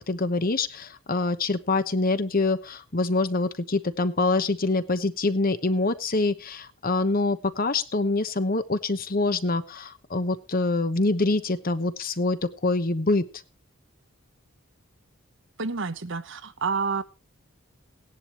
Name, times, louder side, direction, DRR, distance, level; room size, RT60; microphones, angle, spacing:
voice 1, 0.0-13.2, left 2 dB, 40° left, 12 dB, 1.0 m, -25 dB
voice 2, 15.6-17.0, right 4 dB, 60° right, 12 dB, 1.1 m, -29 dB
17.5 x 10.5 x 3.1 m, 0.29 s
head